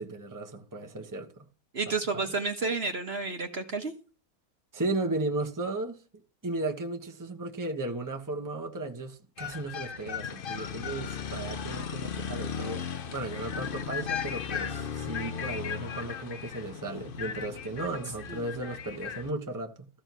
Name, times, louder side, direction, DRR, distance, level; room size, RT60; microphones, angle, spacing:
voice 1, 0.0-1.5 1.9-2.3 4.7-6.0 6.4-12.8 13.1-19.9, right 2 dB, 15° right, 1.3 m, -35 dB
voice 2, 1.7-3.9 18.3-18.5, right 4 dB, 45° right, 1.5 m, -31 dB
sound 1, 9.4-19.3, left 7 dB, 45° left, 0.8 m, -36 dB
14.5 x 5.0 x 6.2 m
omnidirectional pair, 1.6 m